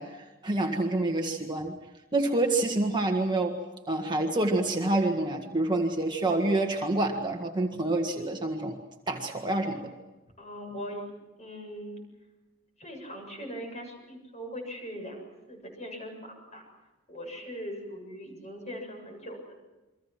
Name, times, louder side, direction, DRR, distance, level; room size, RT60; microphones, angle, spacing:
voice 1, 0.0-1.8 2.1-3.6 3.9-8.8 9.1-9.9, right 2 dB, 20° right, 2 dB, 1.7 m, -27 dB
voice 2, 10.4-11.1 11.4-12.0 12.8-16.6 17.1-19.4, equal, 35° left, 3 dB, 7.3 m, -40 dB
29.5 x 23.5 x 6.0 m, 1.1 s
head